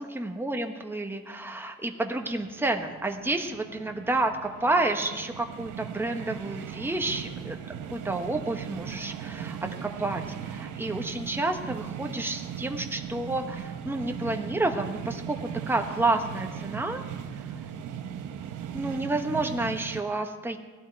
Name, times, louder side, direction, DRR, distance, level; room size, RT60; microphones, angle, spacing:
voice 1, 0.0-17.0 18.7-20.6, right 2 dB, 5° right, 4 dB, 1.2 m, -30 dB
sound 1, 2.2-20.0, right 8 dB, 80° right, 0.9 m, -38 dB
17.5 x 11.5 x 4.5 m, 1.3 s
cardioid pair, 90°, 30 cm